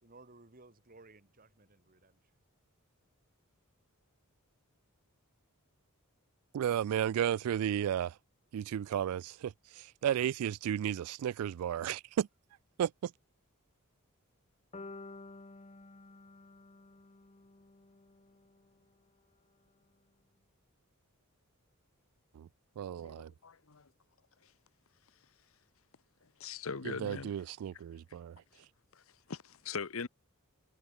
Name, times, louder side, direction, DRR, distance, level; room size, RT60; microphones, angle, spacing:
voice 1, 0.0-2.2, right 3 dB, 40° right, 2.1 m, -58 dB
voice 2, 6.5-8.2 8.5-12.3 12.8-13.1 22.3-22.5 22.8-23.3 26.8-28.4, right 10 dB, 80° right, 0.3 m, -33 dB
sound 1, 14.7-18.8, left 3 dB, 30° left, 1.0 m, -52 dB
voice 3, 22.9-23.9 26.4-27.3 28.9-29.0 29.3-30.1, left 5 dB, 65° left, 1.0 m, -41 dB
head